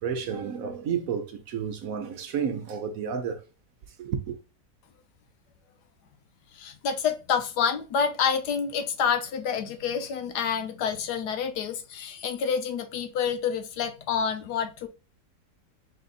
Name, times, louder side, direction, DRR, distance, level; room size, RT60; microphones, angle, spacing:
voice 1, 0.0-3.4 4.0-4.4, right 7 dB, 65° right, 1.0 m, -31 dB
voice 2, 6.5-14.9, left 7 dB, 75° left, 1.3 m, -28 dB
4.3 x 3.9 x 2.3 m
omnidirectional pair, 1.8 m